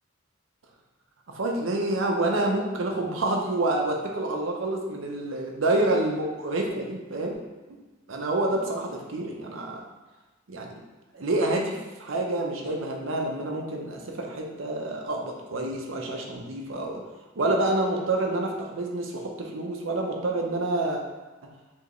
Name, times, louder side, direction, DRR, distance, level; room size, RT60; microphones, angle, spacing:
voice 1, 1.3-7.3 7.7-7.8 8.1-9.8 10.5-10.7 11.1-17.0 17.4-21.0 21.4-21.5, right 2 dB, 75° right, 0 dB, 0.7 m, -28 dB
4.5 x 3.0 x 3.1 m, 1.2 s
head